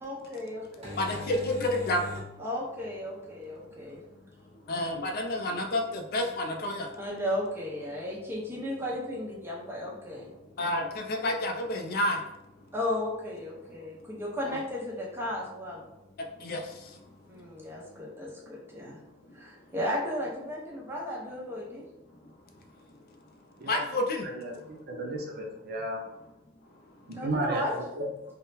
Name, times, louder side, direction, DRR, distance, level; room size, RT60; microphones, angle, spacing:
voice 1, 0.0-0.8 2.4-4.0 7.0-10.3 10.6-10.7 12.7-15.8 17.3-19.0 19.3-21.8 27.1-27.7, left 1 dB, 10° right, -4 dB, 0.7 m, -35 dB
sound 1, 0.6-18.0, left 1 dB, 30° right, 1.3 m, -49 dB
voice 2, 1.0-2.2 4.7-6.9 10.6-12.2 14.5-14.6 16.4-17.0 23.7-24.3, left 1 dB, 50° left, 3 dB, 0.4 m, -30 dB
voice 3, 24.2-26.0 27.1-28.1, right 1 dB, 55° right, 0 dB, 0.6 m, -34 dB
3.6 x 2.1 x 2.7 m, 0.89 s
head